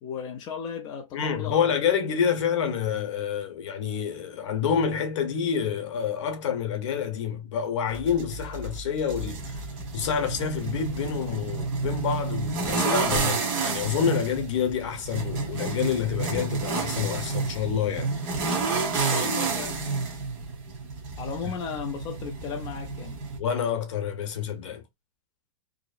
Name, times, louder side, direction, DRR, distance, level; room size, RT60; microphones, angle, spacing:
voice 1, 0.0-1.6 19.1-19.8 21.2-23.2, left 6 dB, 20° left, 0.4 m, -35 dB
voice 2, 1.1-9.7 9.9-18.1 21.4-21.5 23.4-24.8, left 7 dB, 60° left, 0.9 m, -28 dB
sound 1, 7.9-23.4, right 4 dB, 35° right, 0.9 m, -30 dB
2.7 x 2.0 x 2.3 m
supercardioid pair, 165°, 17 cm